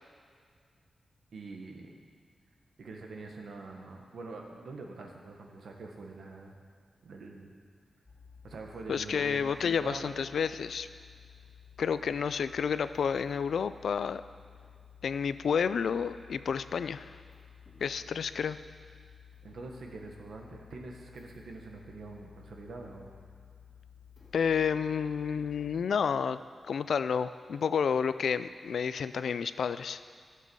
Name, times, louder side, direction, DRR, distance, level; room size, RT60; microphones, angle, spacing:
voice 1, 1.3-2.0 2.8-6.5 7.0-7.5 8.4-10.3 19.4-23.2, right 3 dB, 75° right, 1 dB, 1.5 m, -45 dB
sound 1, 8.1-25.9, left 8 dB, 25° left, 2.9 m, -55 dB
voice 2, 8.9-10.9 11.8-14.2 15.0-17.1 17.8-18.6 24.3-26.4 26.7-30.0, left 6 dB, 75° left, 13 dB, 0.4 m, -30 dB
13.5 x 7.5 x 5.5 m, 2.1 s
wide cardioid pair, 155°, 0 cm